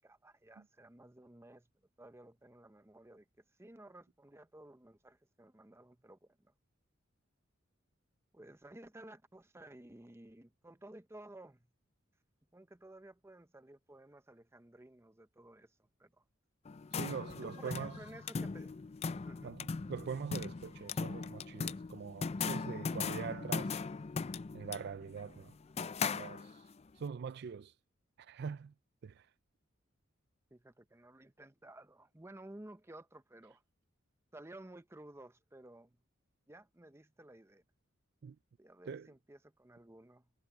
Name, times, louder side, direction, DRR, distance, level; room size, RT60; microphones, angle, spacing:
voice 1, 0.0-1.7 2.0-3.2 3.6-6.5 8.3-11.7 12.5-16.2 17.3-18.8 19.2-19.6 30.5-33.6 34.3-36.0 36.5-37.6 38.6-40.3, right 1 dB, 15° right, 0.7 m, -55 dB
sound 1, 16.7-26.8, left 5 dB, 30° left, 0.4 m, -39 dB
voice 2, 16.9-18.0 19.4-23.8 24.5-25.6 26.1-26.6 27.0-27.7 28.2-28.7 29.0-29.3 38.2-38.4 38.9-39.1, right 6 dB, 55° right, 0.4 m, -43 dB
head